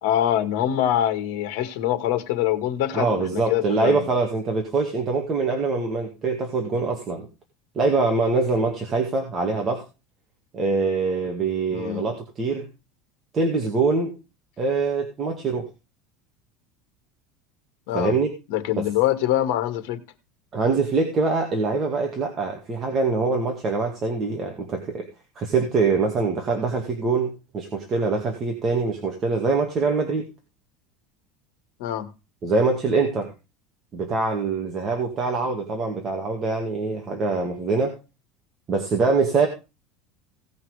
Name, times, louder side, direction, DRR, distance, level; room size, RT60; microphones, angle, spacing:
voice 1, 0.0-4.1 11.7-12.1 17.9-18.1 18.5-20.0 31.8-32.1, left 12 dB, 65° left, 2.0 m, -24 dB
voice 2, 2.9-7.3 7.8-9.8 10.5-12.7 13.3-14.1 14.6-15.7 17.9-18.3 18.8-18.9 20.5-25.1 25.4-30.2 32.4-33.3 33.9-38.0 38.7-39.5, right 3 dB, 20° right, 2.1 m, -24 dB
17.5 x 5.9 x 4.9 m
cardioid pair, 170°, 0 cm